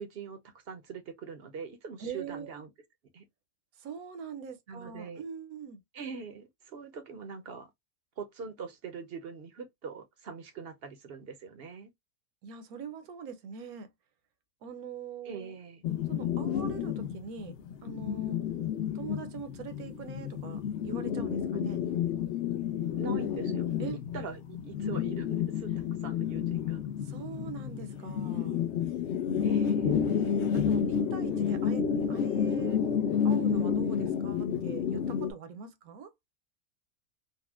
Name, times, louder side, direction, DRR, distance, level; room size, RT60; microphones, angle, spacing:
voice 1, 0.0-2.7 3.1-3.2 4.7-5.2 5.9-7.7 8.2-11.9 15.2-15.8 23.0-23.7 24.1-25.7 26.0-26.8 29.4-29.9, right 5 dB, 55° right, 0.7 m, -42 dB
voice 2, 2.0-2.6 3.8-5.8 12.4-13.9 14.6-15.5 16.1-17.5 17.8-18.4 18.9-21.8 23.8-24.0 27.0-28.6 30.1-32.8 33.2-36.1, right 6 dB, 80° right, 1.2 m, -42 dB
sound 1, 15.8-35.3, left 8 dB, 65° left, 0.7 m, -30 dB
4.0 x 2.1 x 2.3 m
omnidirectional pair, 1.5 m